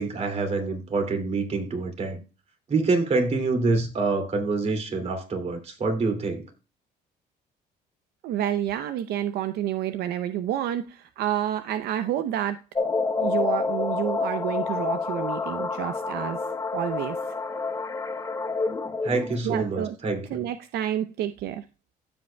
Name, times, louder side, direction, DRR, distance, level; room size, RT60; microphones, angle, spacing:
voice 1, 0.0-2.2 2.7-6.5 19.0-20.4, right 3 dB, 40° right, 2.6 m, -26 dB
voice 2, 8.2-12.6 13.2-16.4 16.7-17.2 19.4-19.9 20.3-21.6, right 11 dB, 75° right, 0.6 m, -29 dB
sound 1, 12.8-19.4, left 4 dB, 20° left, 0.8 m, -28 dB
15.5 x 5.2 x 2.2 m
cardioid pair, 110°, 17 cm